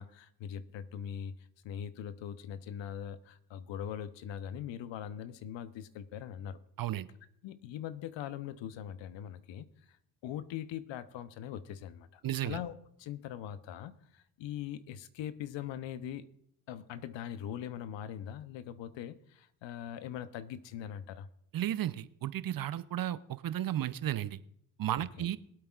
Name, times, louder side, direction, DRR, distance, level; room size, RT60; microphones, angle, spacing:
voice 1, 0.0-1.4 1.6-6.6 7.4-9.7 10.2-12.7 13.0-16.3 16.7-21.3 25.0-25.3, left 9 dB, 65° left, 13 dB, 0.9 m, -41 dB
voice 2, 12.2-12.6 21.5-24.4 24.8-25.4, right 12 dB, 45° right, 16 dB, 0.7 m, -34 dB
22.0 x 8.6 x 2.4 m, 0.72 s
hypercardioid pair, 50°, 48 cm